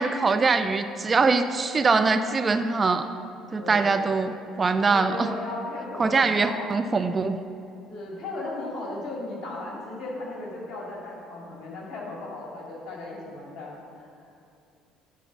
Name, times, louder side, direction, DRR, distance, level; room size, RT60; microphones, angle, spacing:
voice 1, 0.0-3.1 3.5-5.3 6.0-7.4, right 4 dB, 30° right, 9 dB, 0.3 m, -23 dB
voice 2, 3.6-4.0 4.9-6.8 7.9-14.1, left 2 dB, 45° left, -3 dB, 2.2 m, -36 dB
10.0 x 4.1 x 6.0 m, 2.5 s
figure-of-eight pair, 55°, 0 cm